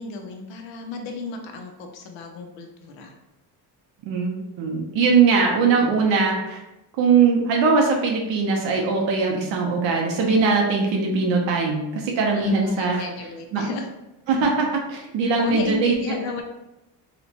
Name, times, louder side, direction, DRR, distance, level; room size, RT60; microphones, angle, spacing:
voice 1, 0.0-3.1 12.3-13.9 14.3-14.4 15.4-16.4, left 3 dB, 80° left, 3 dB, 0.6 m, -33 dB
voice 2, 4.1-6.6 7.0-13.0 13.5-13.6 14.3-16.2, right 4 dB, 85° right, 0 dB, 0.6 m, -21 dB
2.9 x 2.1 x 2.7 m, 0.96 s
cardioid pair, 120°, 43 cm